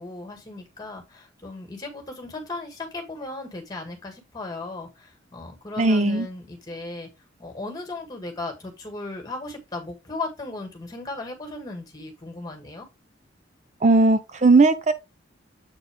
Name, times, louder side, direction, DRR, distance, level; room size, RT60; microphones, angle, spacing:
voice 1, 0.0-7.1 7.4-12.9, left 2 dB, 20° left, 2.0 m, -36 dB
voice 2, 5.8-6.3 13.8-14.9, right 3 dB, 35° right, 0.5 m, -17 dB
8.0 x 4.4 x 3.6 m
head